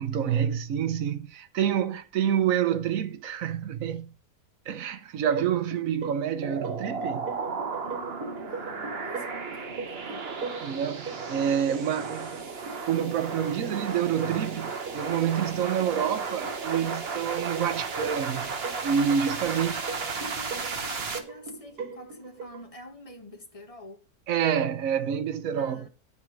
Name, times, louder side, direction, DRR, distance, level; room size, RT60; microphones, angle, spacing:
voice 1, 0.0-4.1 4.7-7.3 10.6-12.4 12.8-18.5 18.8-19.8 24.3-25.9, right 8 dB, 65° right, 1.2 m, -28 dB
sound 1, 5.3-22.6, right 4 dB, 85° right, 2.2 m, -40 dB
sound 2, 6.4-21.2, right 4 dB, 45° right, 1.3 m, -34 dB
voice 2, 7.8-10.3 19.5-24.0 25.5-25.9, left 1 dB, 25° left, 1.5 m, -46 dB
10.5 x 4.6 x 6.2 m
omnidirectional pair, 1.6 m